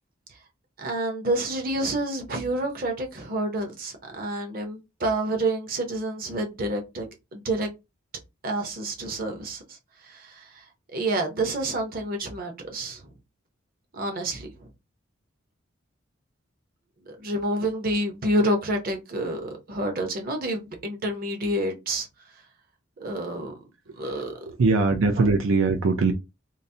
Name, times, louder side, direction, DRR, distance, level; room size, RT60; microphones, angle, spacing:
voice 1, 0.8-7.7 8.4-9.8 10.0-13.1 13.9-14.7 17.1-22.1 23.0-23.6 24.0-24.4 25.2-25.3, right 1 dB, 45° right, 0.7 m, -29 dB
voice 2, 24.4-26.1, right 3 dB, 85° right, 0.5 m, -21 dB
3.9 x 2.0 x 2.7 m
head